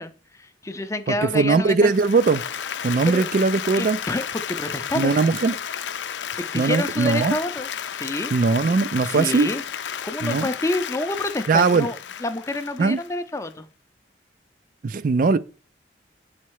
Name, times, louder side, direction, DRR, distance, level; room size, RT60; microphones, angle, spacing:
voice 1, 0.0-1.9 3.0-3.3 3.7-5.2 6.5-8.3 9.0-9.6 10.0-13.7, left 2 dB, 15° left, 0.5 m, -28 dB
voice 2, 1.3-2.4 2.8-4.0 4.9-5.6 6.5-7.4 8.3-9.5 10.2-10.5 11.5-11.9 12.8-13.0 14.8-15.4, right 4 dB, 50° right, 0.4 m, -20 dB
Applause, 1.8-13.5, left 8 dB, 85° left, 0.5 m, -32 dB
8.2 x 4.3 x 4.7 m
head